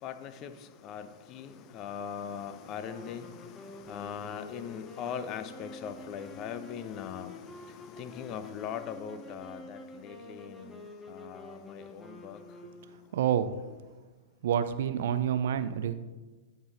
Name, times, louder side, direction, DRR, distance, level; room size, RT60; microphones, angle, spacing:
voice 1, 0.0-12.4, left 7 dB, 40° left, 10 dB, 0.6 m, -41 dB
sound 1, 2.9-13.3, left 3 dB, 15° left, 1.0 m, -48 dB
voice 2, 13.1-13.5 14.4-15.9, right 9 dB, 65° right, 12 dB, 0.4 m, -28 dB
11.0 x 4.0 x 4.0 m, 1.2 s
hypercardioid pair, 100°, 0 cm